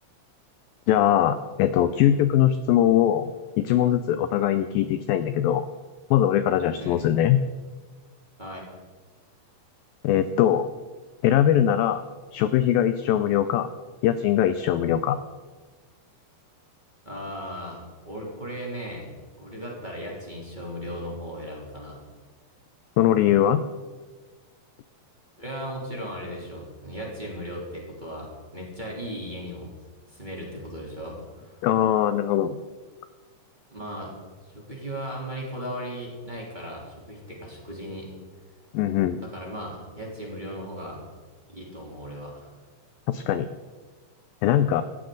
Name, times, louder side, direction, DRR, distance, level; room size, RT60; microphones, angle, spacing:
voice 1, 0.9-3.3 3.6-5.7 6.1-7.4 10.0-10.7 11.2-12.0 12.3-13.7 14.0-15.2 23.0-23.6 31.6-32.6 38.7-39.2 43.1-43.5 44.4-44.8, left 11 dB, 85° left, 11 dB, 2.1 m, -21 dB
voice 2, 17.0-22.0 25.4-29.7 30.1-31.7 33.7-34.1 34.5-38.1 39.3-41.1 41.5-42.5, equal, 15° right, -4 dB, 2.8 m, -37 dB
18.0 x 14.0 x 3.9 m, 1.4 s
omnidirectional pair, 4.6 m